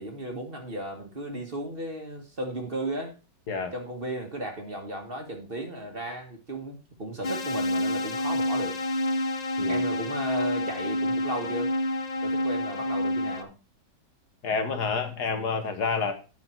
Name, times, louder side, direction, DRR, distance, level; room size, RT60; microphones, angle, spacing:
voice 1, 0.0-3.1 3.7-8.8 9.6-11.7 12.2-13.5, right 1 dB, 35° right, 3 dB, 1.6 m, -35 dB
sound 1, 7.2-13.4, left 1 dB, 90° left, 0.3 m, -28 dB
voice 2, 14.4-16.1, left 5 dB, 65° left, 7 dB, 1.8 m, -28 dB
9.7 x 5.8 x 4.4 m, 0.31 s
omnidirectional pair, 1.9 m